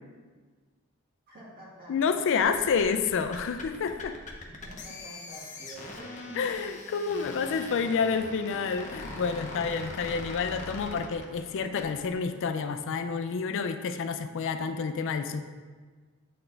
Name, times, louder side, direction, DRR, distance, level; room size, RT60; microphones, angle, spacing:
voice 1, 1.3-2.5 4.5-6.5, right 1 dB, 45° right, -5 dB, 1.8 m, -47 dB
voice 2, 1.9-4.2 6.3-15.5, left 5 dB, 60° left, 8 dB, 0.4 m, -29 dB
sound 1, 2.4-12.1, left 2 dB, 35° left, 0.8 m, -42 dB
8.5 x 4.2 x 3.3 m, 1.5 s
head